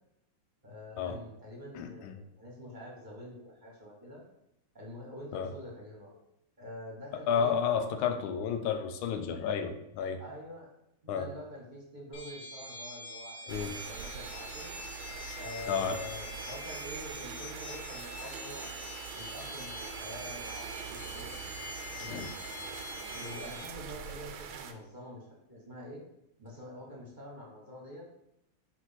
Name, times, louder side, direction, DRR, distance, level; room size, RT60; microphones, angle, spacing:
voice 1, 0.6-4.2 4.7-6.1 6.6-7.5 10.2-10.7 11.1-14.7 15.4-18.7 19.1-21.4 22.0-22.3 23.1-26.0 26.4-28.1, left 1 dB, 25° right, -3 dB, 1.3 m, -46 dB
voice 2, 1.7-2.1 5.3-5.5 7.3-10.2 11.1-11.3 13.5-13.7 15.7-16.0 22.1-22.3, left 7 dB, 90° left, 8 dB, 1.5 m, -31 dB
sound 1, 12.1-23.7, left 2 dB, 40° left, 1.1 m, -44 dB
sound 2, 13.5-24.7, right 8 dB, 80° right, 1.5 m, -43 dB
4.6 x 4.1 x 5.7 m, 0.80 s
omnidirectional pair, 2.2 m